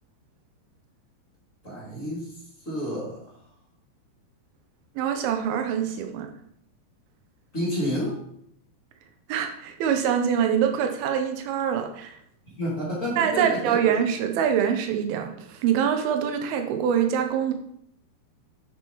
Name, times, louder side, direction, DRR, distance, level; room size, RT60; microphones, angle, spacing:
voice 1, 1.6-2.3 2.6-3.2 7.5-8.2 12.6-13.8, equal, 25° left, -8 dB, 1.9 m, -29 dB
voice 2, 5.0-6.3 9.3-12.2 13.2-17.5, right 8 dB, 85° right, 5 dB, 2.2 m, -24 dB
8.9 x 6.1 x 3.0 m, 0.69 s
omnidirectional pair, 5.3 m